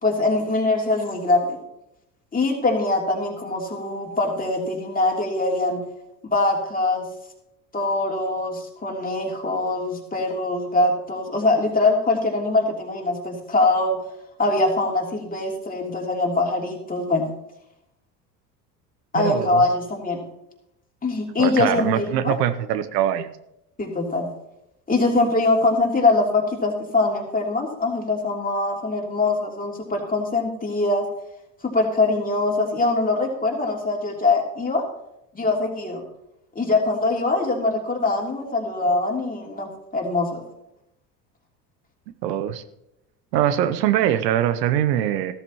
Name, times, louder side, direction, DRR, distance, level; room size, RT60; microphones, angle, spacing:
voice 1, 0.0-1.6 2.3-5.8 6.2-7.1 7.7-14.0 14.4-17.3 19.1-20.2 21.0-22.4 23.8-24.3 24.9-31.1 31.7-34.8 35.3-36.0 36.5-39.7 39.9-40.4, left 2 dB, 15° left, 0 dB, 3.0 m, -23 dB
voice 2, 19.2-19.7 21.4-23.3 42.2-42.6 43.3-45.3, right 11 dB, 80° right, 13 dB, 0.8 m, -22 dB
14.5 x 13.0 x 3.0 m, 0.83 s
hypercardioid pair, 75°, 49 cm